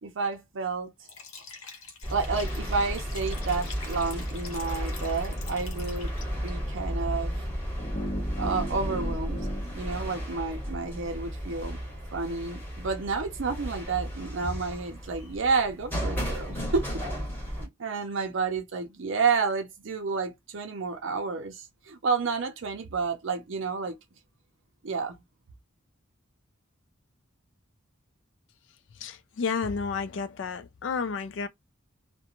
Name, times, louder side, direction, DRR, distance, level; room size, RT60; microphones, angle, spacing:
voice 1, 0.0-0.9 2.1-7.4 8.4-11.8 12.1-16.8 17.5-24.0 24.8-25.2, right 4 dB, 65° right, 0.5 m, -30 dB
Liquid, 1.0-6.5, left 4 dB, 80° left, 0.8 m, -45 dB
sound 1, 2.0-17.7, equal, 10° left, 1.2 m, -33 dB
sound 2, 7.8-10.9, equal, 35° left, 0.9 m, -38 dB
voice 2, 29.0-31.5, left 5 dB, 60° left, 0.4 m, -31 dB
2.4 x 2.2 x 2.9 m
head